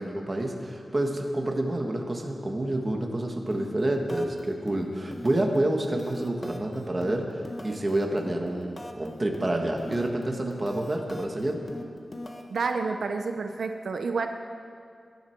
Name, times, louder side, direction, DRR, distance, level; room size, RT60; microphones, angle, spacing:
voice 1, 0.0-11.6, right 1 dB, 25° right, 2 dB, 1.5 m, -28 dB
sound 1, 3.5-3.8 4.1-4.4 4.7-5.6 5.8-9.1 9.3-10.2 10.5-12.7, left 1 dB, 25° left, 1.2 m, -42 dB
voice 2, 12.5-14.3, right 4 dB, 80° right, 5 dB, 0.7 m, -29 dB
19.0 x 11.5 x 4.6 m, 2.2 s
wide cardioid pair, 145°, 0 cm